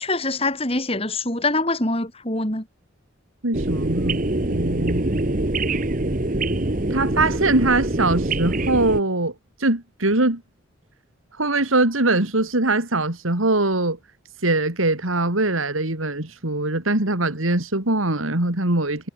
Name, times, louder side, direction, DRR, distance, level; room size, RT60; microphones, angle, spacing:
voice 1, 0.0-2.6, left 2 dB, 30° left, 4.3 m, -24 dB
voice 2, 3.4-4.2 4.5-5.2 6.9-9.3 9.6-10.4 11.4-14.0 14.4-19.1, right 2 dB, 85° right, 3.3 m, -22 dB
sound 1, 3.5-9.0, right 2 dB, 40° right, 1.3 m, -24 dB
head